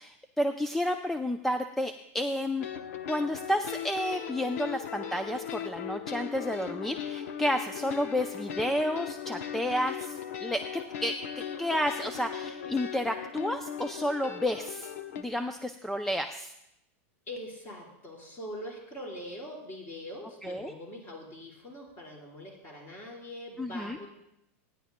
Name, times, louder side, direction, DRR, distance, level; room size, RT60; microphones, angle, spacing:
voice 1, 0.0-2.7 3.1-16.5 20.4-20.7 23.6-24.0, equal, 5° left, 7 dB, 0.4 m, -31 dB
sound 1, 2.6-15.2, left 9 dB, 75° left, 0.9 m, -38 dB
voice 2, 17.3-24.1, left 1 dB, 25° left, -2 dB, 4.3 m, -43 dB
25.5 x 10.5 x 2.2 m, 0.82 s
supercardioid pair, 145°, 8 cm